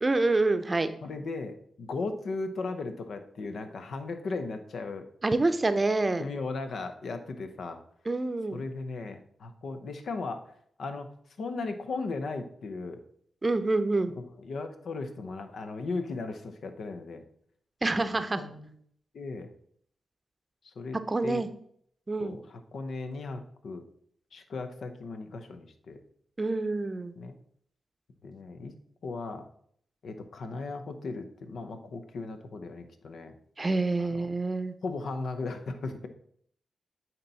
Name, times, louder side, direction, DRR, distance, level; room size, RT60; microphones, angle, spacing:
voice 1, 0.0-0.9 5.2-6.3 8.1-8.6 13.4-14.1 17.8-18.4 21.1-21.5 22.1-22.4 26.4-27.2 33.6-34.7, right 2 dB, 35° right, 10 dB, 0.6 m, -27 dB
voice 2, 1.0-5.0 6.2-7.8 8.5-10.5 10.8-11.1 11.4-13.0 14.2-17.2 17.9-18.0 18.4-18.8 19.1-19.5 20.6-21.5 22.2-23.8 24.3-26.0 27.2-27.4 28.2-28.7 29.0-29.4 30.0-33.3 34.0-34.3 34.8-36.1, left 3 dB, 75° left, 7 dB, 0.7 m, -37 dB
8.8 x 3.0 x 4.0 m, 0.65 s
supercardioid pair, 40°, 0 cm